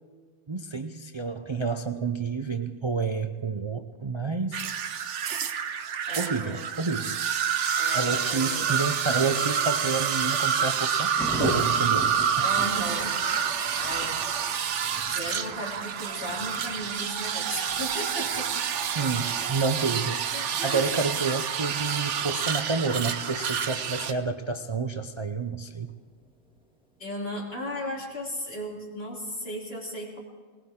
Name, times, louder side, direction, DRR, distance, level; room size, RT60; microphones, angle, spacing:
voice 1, 0.5-4.6 6.1-7.2 7.9-11.1 11.4-12.5 18.9-20.2 20.6-25.9, right 4 dB, 40° right, 7 dB, 0.4 m, -29 dB
sound 1, 4.5-24.1, right 7 dB, 70° right, 1.1 m, -28 dB
voice 2, 6.1-6.7 7.8-8.7 12.4-13.1 13.8-14.2 15.1-18.5 20.3-21.1 27.0-30.2, equal, 50° left, -2 dB, 3.3 m, -36 dB
Thunder, 11.2-27.3 27.6-27.7 28.0-28.1 28.4-28.8, right 1 dB, 5° right, 1.8 m, -42 dB
21.0 x 19.0 x 3.6 m, 1.5 s
omnidirectional pair, 1.3 m